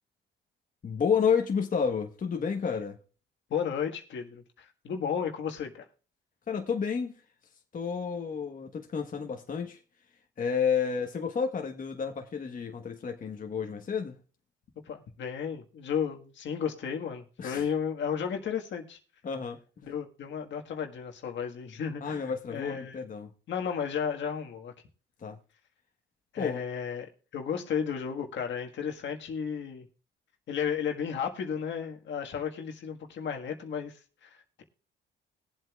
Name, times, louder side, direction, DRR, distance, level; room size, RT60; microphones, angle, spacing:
voice 1, 0.8-3.0 6.5-7.2 7.7-9.8 10.4-14.2 17.4-17.6 19.2-19.6 22.0-23.3 25.2-25.4 26.4-26.6, left 6 dB, 45° left, 1.3 m, -30 dB
voice 2, 3.5-5.8 14.8-19.0 19.8-23.0 23.5-24.7 26.3-29.9 30.5-34.6, left 7 dB, 70° left, 1.7 m, -33 dB
21.0 x 7.9 x 2.4 m
cardioid pair, 90°, 20 cm